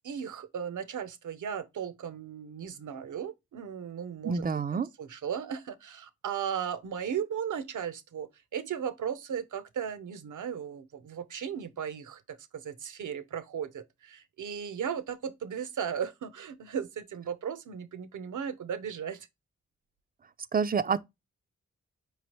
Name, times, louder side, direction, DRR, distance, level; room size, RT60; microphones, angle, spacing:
voice 1, 0.0-4.5 4.7-19.3, right 8 dB, 70° right, 0.7 m, -36 dB
voice 2, 4.2-4.9 20.5-21.0, right 6 dB, 30° right, 0.4 m, -27 dB
4.8 x 3.2 x 3.0 m
supercardioid pair, 45°, 31 cm